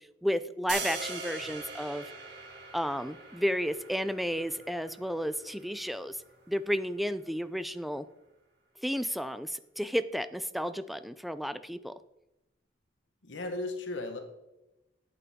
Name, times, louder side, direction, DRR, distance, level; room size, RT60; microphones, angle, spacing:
voice 1, 0.0-2.1 2.7-6.2 6.5-8.1 8.8-11.9, equal, ahead, 13 dB, 0.4 m, -32 dB
sound 1, 0.7-6.8, right 4 dB, 60° right, 2.2 m, -42 dB
voice 2, 13.2-14.2, left 2 dB, 75° left, 5 dB, 1.2 m, -35 dB
10.5 x 8.6 x 3.6 m, 0.93 s
head